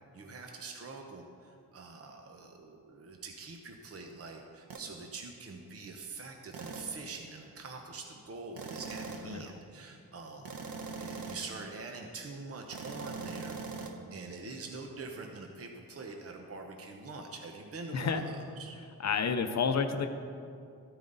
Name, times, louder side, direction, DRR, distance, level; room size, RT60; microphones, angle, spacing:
voice 1, 0.1-10.5 11.0-18.8, right 3 dB, 45° right, 2 dB, 1.0 m, -44 dB
sound 1, 4.7-4.9 6.5-7.0 8.6-9.4 10.4-11.6 12.7-13.9, right 4 dB, 85° right, 1.1 m, -41 dB
voice 2, 17.9-18.2 19.0-20.1, left 5 dB, 50° left, 7 dB, 0.7 m, -30 dB
13.5 x 9.1 x 4.0 m, 2.4 s
cardioid pair, 100°, 34 cm